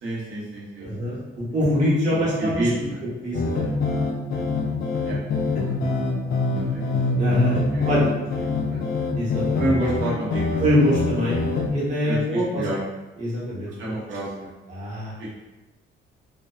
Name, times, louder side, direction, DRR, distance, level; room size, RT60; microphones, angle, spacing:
voice 1, 0.0-1.1 2.1-3.0 5.0-5.2 6.5-6.9 7.7-8.0 8.7-8.8 9.6-10.8 12.0-12.8 13.8-14.5 15.2-15.3, right 1 dB, 65° right, -7 dB, 0.9 m, -29 dB
voice 2, 0.8-2.6 3.2-3.7 7.2-7.6 7.8-8.1 9.2-9.7 10.6-11.4 11.7-12.6 13.2-13.7 14.7-15.1, equal, 35° right, -7 dB, 0.9 m, -23 dB
sound 1, 3.3-11.7, left 3 dB, 45° left, 0.4 m, -25 dB
2.6 x 2.2 x 2.2 m, 1.1 s
cardioid pair, 120°, 21 cm